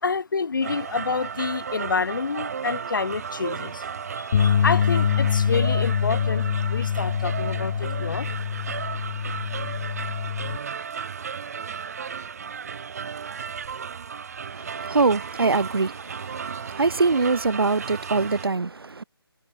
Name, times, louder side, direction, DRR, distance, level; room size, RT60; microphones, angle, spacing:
voice 1, 0.0-3.8 4.2-8.4, left 4 dB, 50° left, 2.6 m, -28 dB
sound 1, 0.6-18.5, right 6 dB, 40° right, 1.1 m, -34 dB
sound 2, 4.3-10.6, left 8 dB, 20° left, 0.4 m, -24 dB
voice 2, 14.5-19.0, right 3 dB, 65° right, 0.9 m, -24 dB
figure-of-eight pair, 150°, 13 cm